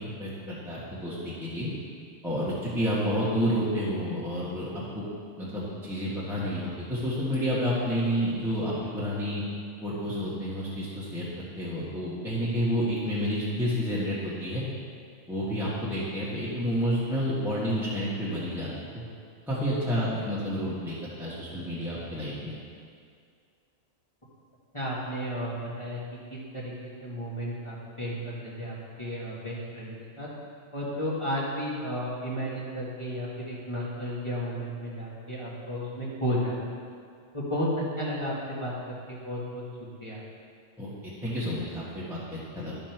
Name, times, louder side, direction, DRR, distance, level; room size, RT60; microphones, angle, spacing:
voice 1, 0.0-1.7 2.2-5.0 5.4-9.4 9.8-11.3 11.6-14.6 15.3-18.7 18.9-19.0 19.5-22.5 40.8-42.8, equal, ahead, -9 dB, 1.6 m, -30 dB
voice 2, 24.7-26.0 26.3-29.9 30.2-30.3 30.7-36.6 37.3-39.6 40.0-40.2, equal, 25° left, -8 dB, 1.8 m, -33 dB
12.5 x 5.5 x 4.6 m, 2.2 s
omnidirectional pair, 1.2 m